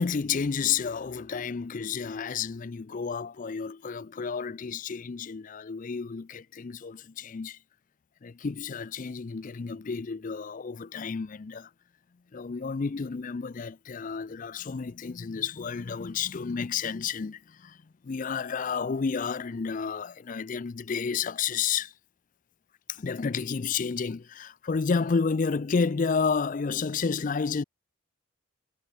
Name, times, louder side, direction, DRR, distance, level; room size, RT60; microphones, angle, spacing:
voice 1, 0.0-7.6 8.2-11.7 12.3-17.8 18.0-21.9 22.9-27.6, left 5 dB, 40° left, 0.4 m, -31 dB
head